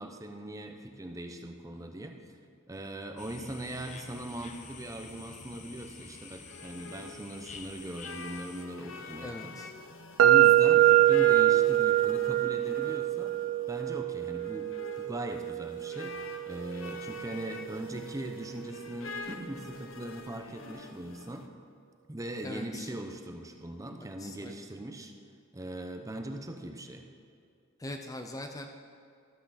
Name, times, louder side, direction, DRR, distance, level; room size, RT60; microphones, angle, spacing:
voice 1, 0.0-2.1 2.7-9.6 10.2-13.4 13.7-14.7 15.0-16.2 16.5-21.5 22.1-25.1 25.5-27.1, right 1 dB, 15° right, 4 dB, 0.7 m, -40 dB
sound 1, 3.2-8.6, left 4 dB, 35° left, 0.8 m, -48 dB
sound 2, 6.1-21.5, left 4 dB, 75° left, 0.8 m, -46 dB
voice 2, 9.2-9.7 22.4-22.9 24.2-24.5 27.8-28.7, left 1 dB, 20° left, 4 dB, 0.5 m, -41 dB
sound 3, 10.2-18.1, right 13 dB, 80° right, 0.4 m, -25 dB
12.5 x 8.1 x 4.1 m, 2.4 s
head